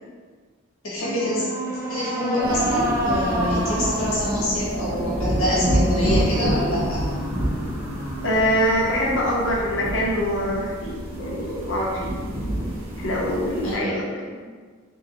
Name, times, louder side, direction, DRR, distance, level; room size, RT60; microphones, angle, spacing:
voice 1, 0.8-1.5 1.9-7.1 13.6-13.9 14.3-14.4, left 1 dB, 80° left, -7 dB, 1.2 m, -26 dB
sound 1, 1.0-10.4, right 1 dB, 15° right, 0.5 m, -30 dB
sound 2, 2.4-13.7, equal, 90° right, 1.0 m, -28 dB
voice 2, 8.2-12.2 13.0-14.2, equal, 60° left, -3 dB, 0.8 m, -24 dB
3.8 x 3.6 x 2.9 m, 1.5 s
head